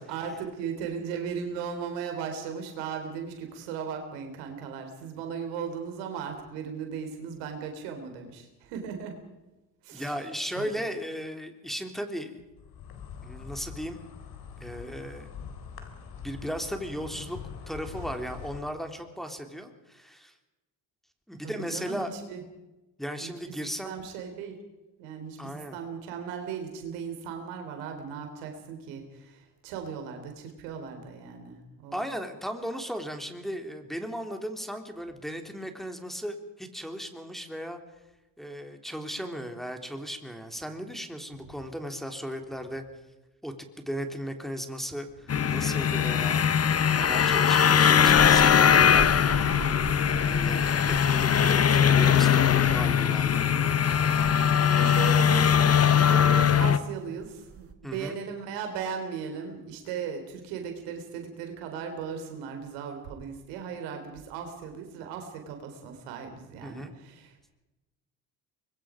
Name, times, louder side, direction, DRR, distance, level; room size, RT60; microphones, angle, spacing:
voice 1, 0.0-9.2 9.8-10.1 10.6-10.7 21.4-22.4 23.2-23.3 23.8-24.6 25.0-32.0 54.2-67.5, right 6 dB, 80° right, 5 dB, 3.8 m, -37 dB
voice 2, 9.9-12.4 13.2-14.0 14.6-15.3 16.2-17.4 17.7-20.3 21.3-22.1 23.0-23.9 25.4-25.8 31.9-37.8 38.4-42.8 43.4-49.7 50.0-53.4 57.8-58.2 66.6-66.9, equal, ahead, 4 dB, 3.3 m, -36 dB
Insect, 12.6-18.6, left 7 dB, 60° left, 3.8 m, -43 dB
sound 1, 45.3-56.8, left 8 dB, 35° left, 1.2 m, -21 dB
sound 2, 48.1-57.7, right 5 dB, 30° right, 2.1 m, -41 dB
24.5 x 22.0 x 5.1 m, 1.0 s
supercardioid pair, 65°, 42 cm